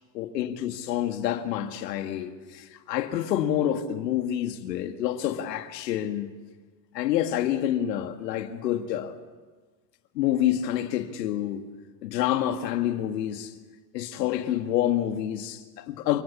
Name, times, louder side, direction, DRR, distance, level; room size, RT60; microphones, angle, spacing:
voice 1, 0.1-6.3 6.9-9.2 10.1-11.7 12.0-13.5 13.9-16.2, left 11 dB, 90° left, 2.1 m, -28 dB
29.0 x 19.0 x 8.4 m
supercardioid pair, 110°, 48 cm